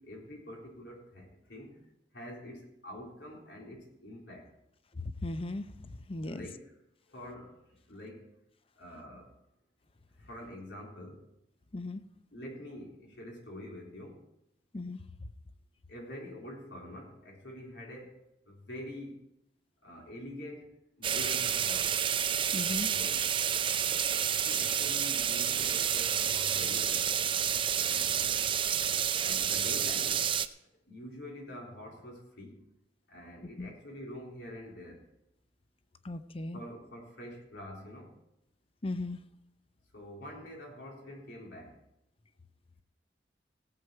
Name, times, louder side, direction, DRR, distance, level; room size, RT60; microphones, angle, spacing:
voice 1, 0.0-1.8 2.1-4.5 6.3-6.7 7.1-8.3 8.8-9.3 10.2-11.2 12.3-14.2 15.9-18.2 18.5-19.2 19.8-22.0 22.9-23.4 24.4-27.1 27.8-28.6 29.2-30.3 30.9-32.6 33.1-35.1 36.5-38.1 39.9-41.8, left 1 dB, 85° left, -1 dB, 3.6 m, -46 dB
voice 2, 5.2-5.7 6.1-6.4 11.7-12.0 14.7-15.0 22.5-22.9 33.6-33.7 36.0-36.6 38.8-39.2, left 2 dB, 30° left, 12 dB, 0.6 m, -36 dB
sound 1, 21.0-30.5, right 8 dB, 30° right, 0.4 m, -29 dB
18.5 x 7.9 x 4.6 m, 0.83 s
head